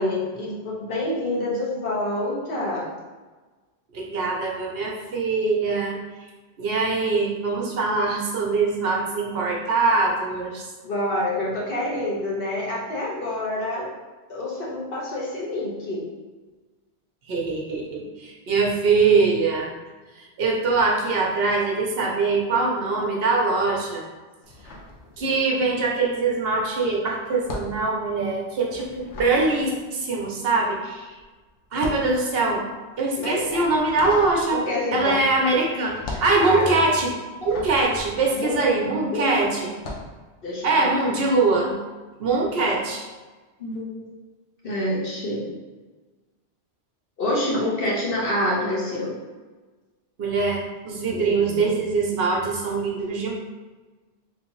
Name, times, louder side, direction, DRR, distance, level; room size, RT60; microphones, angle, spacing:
voice 1, 0.0-2.8 10.8-13.9 14.3-16.0 33.2-33.6 34.5-35.2 36.4-36.7 38.3-38.6 39.1-39.4 40.4-41.2 43.6-44.1 44.6-45.4 47.2-49.2 51.1-51.7, left 1 dB, 55° left, -4 dB, 1.2 m, -27 dB
voice 2, 3.9-6.0 6.6-10.6 17.3-19.7 20.4-24.0 25.2-31.1 31.7-32.6 33.0-34.6 34.9-37.1 37.4-39.7 40.6-41.7 42.2-43.0 50.2-53.3, right 3 dB, 60° right, -1 dB, 0.9 m, -23 dB
sound 1, 24.4-25.7 25.9-39.1 39.7-40.2, left 2 dB, 80° left, 1.0 m, -39 dB
3.5 x 3.1 x 3.1 m, 1.3 s
omnidirectional pair, 1.2 m